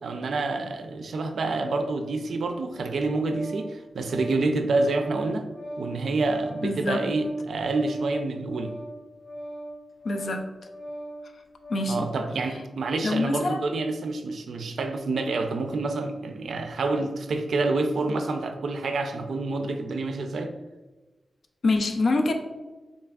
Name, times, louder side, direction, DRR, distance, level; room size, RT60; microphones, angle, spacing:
voice 1, 0.0-5.5 5.8-8.8 11.9-20.5, right 3 dB, 85° right, 6 dB, 0.3 m, -28 dB
Organ, 2.7-12.1, right 1 dB, 40° left, 1.1 m, -40 dB
voice 2, 6.6-7.0 10.0-10.4 11.7-12.1 13.0-13.6 21.6-22.3, left 2 dB, 60° left, 4 dB, 0.4 m, -25 dB
4.0 x 3.4 x 2.3 m, 1.2 s
wide cardioid pair, 150°, 0 cm